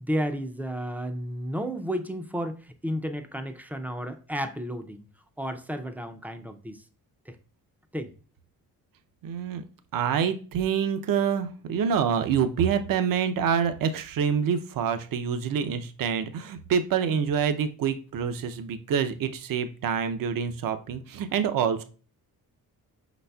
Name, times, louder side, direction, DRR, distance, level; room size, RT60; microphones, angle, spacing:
voice 1, 0.0-5.1 5.4-6.8 7.3-7.4 7.9-8.1, equal, 5° right, 7 dB, 0.3 m, -32 dB
voice 2, 9.2-9.6 9.9-21.8, right 7 dB, 60° right, 10 dB, 0.6 m, -26 dB
5.4 x 4.1 x 2.2 m, 0.38 s
cardioid pair, 125°, 37 cm